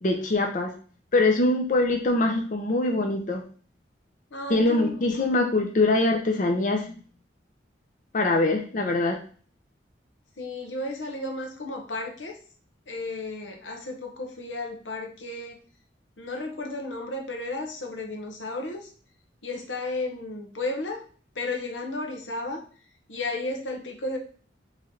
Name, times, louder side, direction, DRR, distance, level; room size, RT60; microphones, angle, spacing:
voice 1, 0.0-0.7 1.1-3.4 4.5-6.9 8.1-9.2, left 2 dB, 45° left, 3 dB, 0.5 m, -23 dB
voice 2, 4.3-5.1 10.4-12.4 12.9-15.6 16.2-18.9 19.4-21.0 21.3-22.6 23.1-24.2, left 2 dB, 90° left, 2 dB, 1.0 m, -33 dB
4.1 x 3.2 x 3.8 m, 0.42 s
head